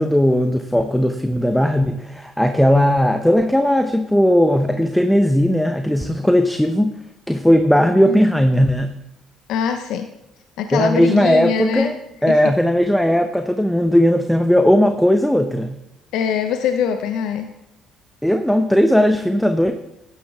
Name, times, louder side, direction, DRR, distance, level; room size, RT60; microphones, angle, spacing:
voice 1, 0.0-6.9 7.3-9.0 10.7-11.9 12.2-15.8 18.2-19.7, equal, 5° left, 7 dB, 0.8 m, -17 dB
voice 2, 9.5-10.1 10.6-11.9 12.3-12.4 16.1-17.5, left 7 dB, 70° left, 7 dB, 0.7 m, -22 dB
13.0 x 9.7 x 3.6 m, 0.87 s
hypercardioid pair, 60°, 0 cm